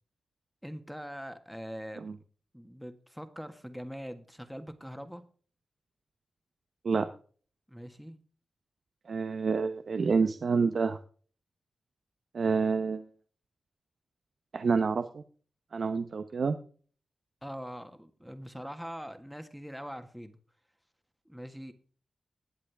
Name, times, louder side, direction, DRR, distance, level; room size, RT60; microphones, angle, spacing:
voice 1, 0.6-2.1 2.5-5.2 7.7-8.2 17.4-20.4 21.2-21.7, equal, ahead, 7 dB, 1.7 m, -42 dB
voice 2, 9.1-11.0 12.3-13.1 14.5-15.2 15.7-16.6, right 5 dB, 65° right, 8 dB, 0.9 m, -28 dB
20.5 x 7.6 x 3.4 m, 0.43 s
cardioid pair, 70°, 0 cm